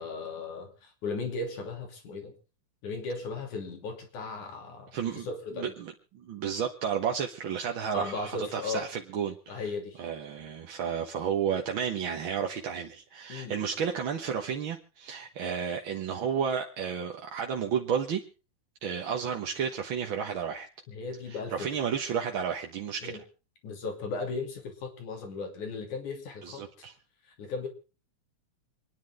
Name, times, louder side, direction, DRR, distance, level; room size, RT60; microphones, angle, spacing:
voice 1, 0.0-2.3 2.8-5.7 7.9-8.9 9.5-10.0 13.3-13.6 20.9-21.7 23.0-23.2 23.6-26.9 27.4-27.7, left 3 dB, 80° left, 4 dB, 4.3 m, -36 dB
voice 2, 4.9-5.3 5.6-9.6 10.0-18.2 18.8-20.7 21.5-23.2 26.4-26.9, right 7 dB, 55° right, 2 dB, 1.6 m, -32 dB
27.5 x 10.5 x 3.6 m, 0.33 s
omnidirectional pair, 3.5 m